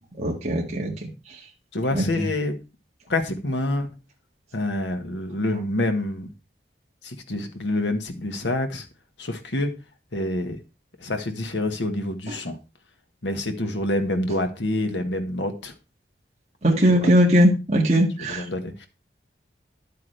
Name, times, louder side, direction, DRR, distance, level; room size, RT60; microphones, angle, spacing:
voice 1, 0.2-1.1 1.9-2.3 12.3-12.4 16.6-18.4, equal, 40° right, 2.1 m, -20 dB
voice 2, 1.7-2.6 3.1-3.9 4.5-6.3 7.0-8.8 9.2-9.7 10.1-10.6 11.0-12.6 13.2-15.7 16.9-17.1 18.3-18.9, left 1 dB, 85° left, 1.6 m, -27 dB
10.5 x 8.5 x 3.4 m
head